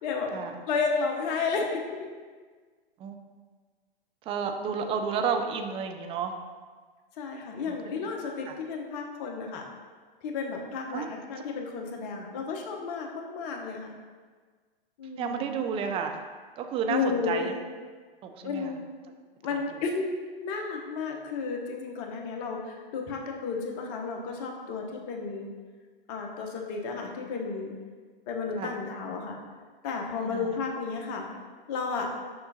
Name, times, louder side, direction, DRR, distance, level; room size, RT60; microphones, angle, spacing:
voice 1, 0.7-1.6 7.2-9.7 10.2-13.9 15.0-15.5 16.9-17.6 18.4-18.8 19.4-20.1 20.4-25.5 26.1-27.7 28.3-29.4 29.8-31.3 31.7-32.1, left 5 dB, 40° left, 1 dB, 1.0 m, -32 dB
voice 2, 4.3-6.3 7.6-7.9 8.5-8.6 10.9-11.1 15.2-16.2 16.6-17.5 18.2-18.8 19.7-19.8 28.5-28.8 30.2-30.6, right 6 dB, 20° right, 6 dB, 0.4 m, -31 dB
6.6 x 5.6 x 2.8 m, 1.5 s
hypercardioid pair, 110°, 30 cm